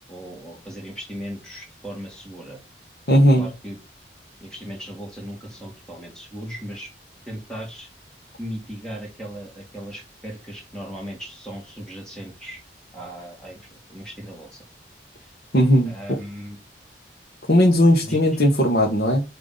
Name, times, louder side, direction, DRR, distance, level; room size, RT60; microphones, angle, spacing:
voice 1, 0.0-2.6 3.4-3.8 4.4-6.9 7.2-7.9 8.4-12.6 12.9-14.6 15.2-15.3 15.9-16.6 18.1-18.3, equal, 5° left, 2.1 m, -37 dB
voice 2, 3.1-3.5 15.5-15.9 17.5-19.2, equal, 60° left, 1.1 m, -17 dB
8.7 x 2.9 x 3.8 m
head